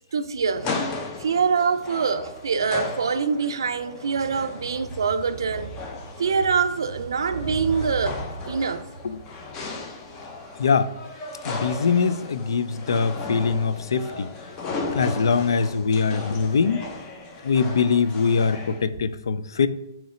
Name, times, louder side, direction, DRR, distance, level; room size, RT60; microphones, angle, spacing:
voice 1, 0.1-0.7 1.2-5.8 6.2-8.9 14.7-14.8, right 5 dB, 90° right, 0.4 m, -24 dB
sound 1, 0.5-18.8, left 3 dB, 25° left, 0.6 m, -36 dB
voice 2, 10.6-10.9 11.4-14.3 14.9-16.8 17.4-19.7, left 5 dB, 90° left, 0.4 m, -22 dB
3.7 x 3.0 x 4.3 m
hypercardioid pair, 155°, 2 cm